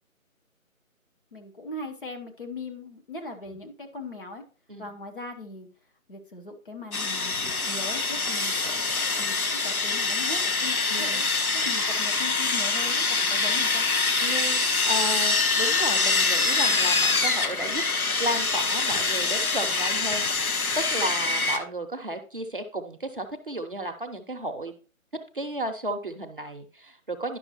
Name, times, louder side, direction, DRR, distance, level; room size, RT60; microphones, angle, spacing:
voice 1, 1.3-4.4 4.8-5.7 6.1-7.4 7.7-11.2 11.5-13.8, left 2 dB, 40° left, 2 dB, 1.2 m, -39 dB
Sawing, 6.9-21.6, left 3 dB, 85° left, 1.2 m, -25 dB
voice 2, 10.9-11.3 14.2-17.8 18.2-24.7 25.3-27.4, right 1 dB, 40° right, 5 dB, 0.7 m, -33 dB
10.5 x 6.1 x 3.0 m, 0.37 s
figure-of-eight pair, 160°, 42 cm